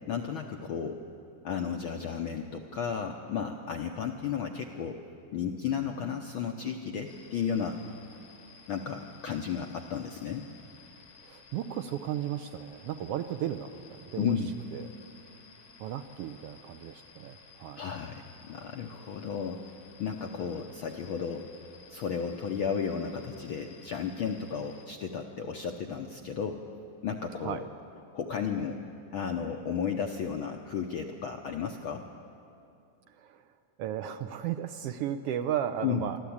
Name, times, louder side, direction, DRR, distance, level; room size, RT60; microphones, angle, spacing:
voice 1, 0.1-1.0 1.4-5.0 5.3-7.8 8.7-10.5 14.2-14.5 17.8-19.6 20.0-21.5 21.9-26.7 27.0-27.6 28.1-28.8 29.1-32.1 35.8-36.0, left 7 dB, 75° left, 4 dB, 1.2 m, -33 dB
sound 1, 7.1-24.9, left 5 dB, 55° left, 1.1 m, -55 dB
voice 2, 11.2-14.4 14.7-14.9 15.8-17.8 27.4-27.7 33.2-33.5 33.8-36.2, right 10 dB, 80° right, 9 dB, 1.4 m, -35 dB
26.5 x 13.0 x 8.6 m, 2.6 s
omnidirectional pair, 3.4 m